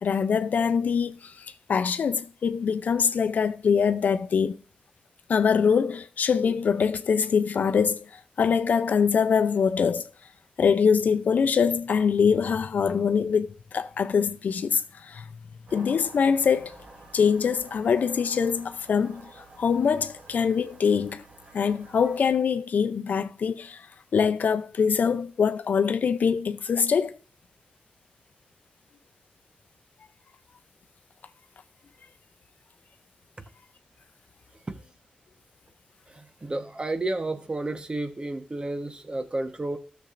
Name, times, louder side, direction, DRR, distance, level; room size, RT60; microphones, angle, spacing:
voice 1, 0.0-4.6 5.3-8.1 8.4-10.1 10.6-15.2 15.7-16.8 17.1-21.2 21.5-23.8 24.1-27.2, left 6 dB, 80° left, 0.5 m, -24 dB
sound 1, 15.7-22.3, right 2 dB, 70° right, 3.1 m, -50 dB
voice 2, 36.4-39.8, right 2 dB, 35° right, 1.2 m, -31 dB
13.5 x 6.9 x 2.6 m
cardioid pair, 55°, 3 cm